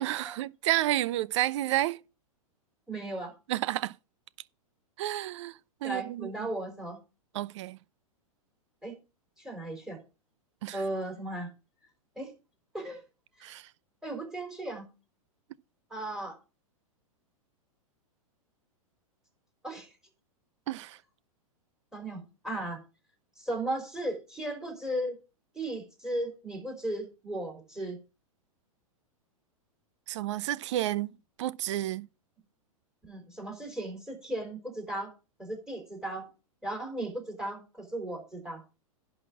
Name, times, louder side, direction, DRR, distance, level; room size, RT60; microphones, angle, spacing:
voice 1, 0.0-2.0 3.5-3.9 5.0-6.5 7.3-7.8 10.6-10.8 13.4-13.6 20.7-21.0 30.1-31.1 31.4-32.1, right 14 dB, 55° right, 0.6 m, -30 dB
voice 2, 2.9-3.4 5.8-7.0 8.8-8.9 9.4-10.0 10.7-11.5 12.2-12.3 12.7-13.0 13.4-13.5 14.0-14.9 15.9-16.4 19.6-19.9 21.9-22.8 23.4-25.2 25.5-28.0 33.1-35.1 35.4-36.3 36.6-38.6, right 1 dB, 5° right, 3.9 m, -36 dB
11.0 x 4.2 x 7.2 m
hypercardioid pair, 110°, 18 cm